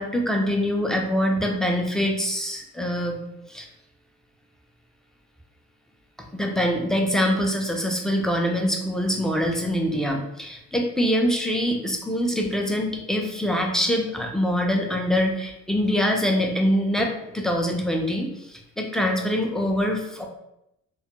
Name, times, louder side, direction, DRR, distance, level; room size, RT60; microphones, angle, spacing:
voice 1, 0.0-3.2 3.5-3.7 6.3-20.3, equal, ahead, 1 dB, 0.3 m, -24 dB
2.2 x 2.1 x 2.8 m, 0.84 s
cardioid pair, 90°, 30 cm